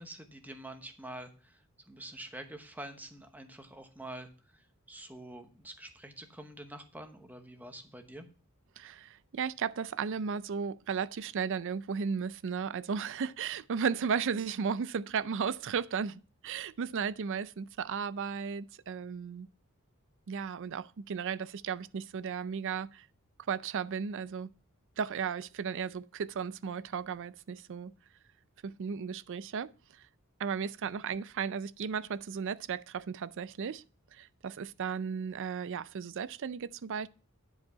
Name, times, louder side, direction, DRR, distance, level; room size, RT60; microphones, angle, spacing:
voice 1, 0.0-8.3, right 1 dB, 10° right, 1.0 m, -47 dB
voice 2, 8.8-19.5 20.3-23.1 23.5-24.5 25.0-27.9 28.6-30.0 30.4-33.8 34.1-37.1, right 6 dB, 60° right, 0.4 m, -35 dB
10.5 x 4.8 x 5.5 m
head